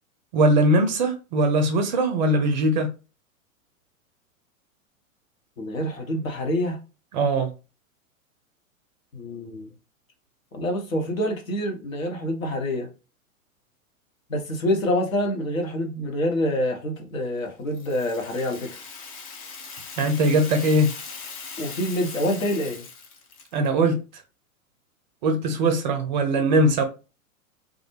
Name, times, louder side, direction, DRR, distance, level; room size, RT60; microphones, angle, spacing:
voice 1, 0.3-2.9 7.1-7.5 20.0-20.9 23.5-24.0 25.2-26.8, right 1 dB, 35° right, 0.4 m, -21 dB
voice 2, 5.6-6.8 9.1-9.7 10.5-12.9 14.3-18.8 21.6-22.9, left 1 dB, 70° left, 0.9 m, -26 dB
Rattle (instrument), 17.7-23.7, left 5 dB, 25° left, 0.4 m, -40 dB
2.3 x 2.0 x 3.0 m
figure-of-eight pair, 100°, 42 cm